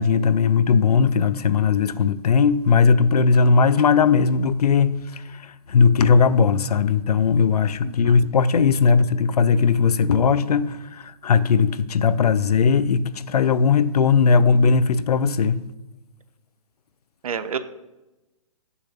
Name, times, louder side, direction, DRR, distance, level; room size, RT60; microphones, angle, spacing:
voice 1, 0.0-15.6, left 5 dB, 90° left, 0.6 m, -18 dB
voice 2, 7.8-8.1 17.2-17.6, right 7 dB, 70° right, 0.8 m, -29 dB
7.0 x 5.7 x 6.9 m
hypercardioid pair, 160°, 19 cm